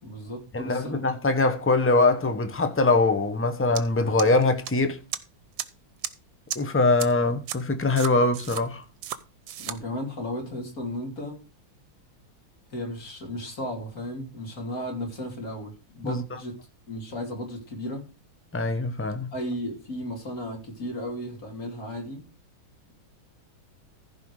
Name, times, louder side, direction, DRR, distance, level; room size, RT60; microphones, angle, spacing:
voice 1, 0.0-1.1 9.6-11.4 12.7-18.1 19.3-22.3, left 1 dB, 45° left, 3.4 m, -35 dB
voice 2, 0.5-5.0 6.5-8.8 16.0-16.2 18.5-19.3, left 3 dB, 15° left, 0.5 m, -23 dB
sound 1, 3.8-3.9 4.2-4.7 5.1-5.2 5.6-5.7 6.0-6.1 6.5-6.6 7.0-7.1 7.5-7.6 8.0-8.6 9.0-9.2 9.5-9.8, right 11 dB, 70° right, 1.5 m, -32 dB
15.0 x 5.2 x 4.8 m
omnidirectional pair, 2.3 m